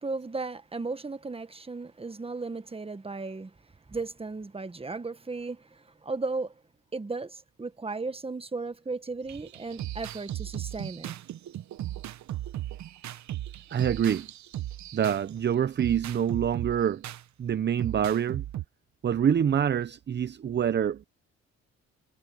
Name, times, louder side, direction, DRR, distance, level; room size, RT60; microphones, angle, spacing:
voice 1, 0.0-3.5 3.9-6.5 6.9-11.1, right 3 dB, 20° right, 1.4 m, -35 dB
sound 1, 9.3-15.3 15.8-17.2 17.8-18.6, right 13 dB, 65° right, 1.0 m, -36 dB
voice 2, 13.7-14.3 14.9-17.0 17.4-18.4 19.0-21.1, right 9 dB, 35° right, 0.6 m, -26 dB
cardioid pair, 90°, 30 cm